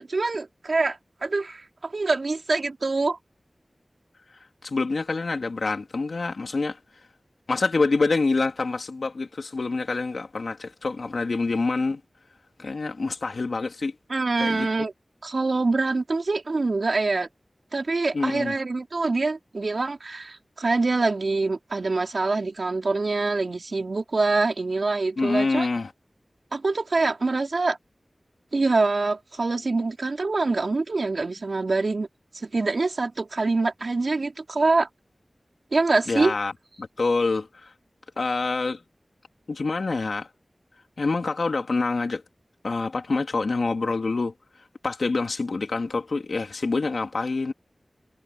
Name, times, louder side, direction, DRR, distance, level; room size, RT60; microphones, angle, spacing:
voice 1, 0.0-3.2 14.1-14.9 15.2-17.3 17.7-25.7 26.5-27.8 28.5-32.1 32.3-34.9 35.7-36.3, right 3 dB, 75° right, 4.3 m, -25 dB
voice 2, 4.6-6.8 7.5-12.0 12.6-13.9 14.4-14.9 18.1-18.5 25.2-25.9 36.1-36.5 36.8-37.7 38.2-38.8 39.5-40.3 41.0-42.2 42.6-44.3 44.8-47.5, left 3 dB, 90° left, 2.9 m, -26 dB
wide cardioid pair, 55°, 0 cm